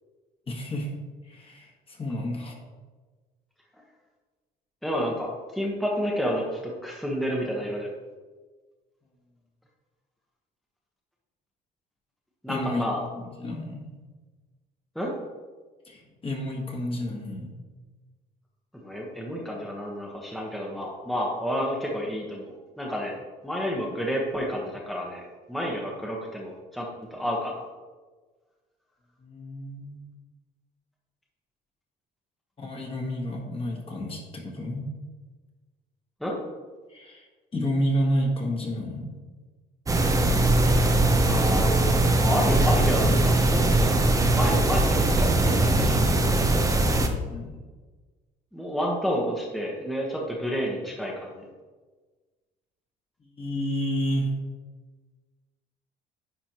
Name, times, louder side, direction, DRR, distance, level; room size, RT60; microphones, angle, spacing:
voice 1, 0.5-0.9 1.3-2.6 12.5-12.8 13.1-14.0 15.8-17.6 29.2-30.1 32.6-34.9 36.9-37.3 37.5-39.2 47.3-47.6 53.3-54.3, equal, 30° left, 0 dB, 1.6 m, -30 dB
voice 2, 4.8-7.9 12.4-13.0 14.9-15.1 18.7-23.2 23.4-27.6 36.2-36.4 41.2-46.0 48.5-51.4, equal, ahead, -2 dB, 1.2 m, -30 dB
sound 1, 39.9-47.1, right 2 dB, 20° right, 0.8 m, -21 dB
9.8 x 4.4 x 3.0 m, 1.3 s
supercardioid pair, 90°, 18 cm